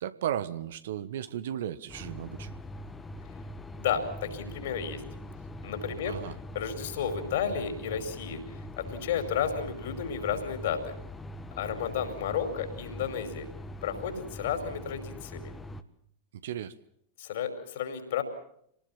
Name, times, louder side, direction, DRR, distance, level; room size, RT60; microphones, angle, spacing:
voice 1, 0.0-2.5 6.0-6.3 16.4-16.7, right 10 dB, 60° right, 13 dB, 1.4 m, -35 dB
sound 1, 1.9-15.8, left 1 dB, 15° left, 1.7 m, -42 dB
voice 2, 3.7-5.0 5.6-6.2 6.5-10.9 11.6-13.5 13.8-15.4 17.2-18.2, left 7 dB, 55° left, 7 dB, 5.2 m, -32 dB
27.5 x 19.0 x 7.4 m, 0.71 s
figure-of-eight pair, 90°, 0 cm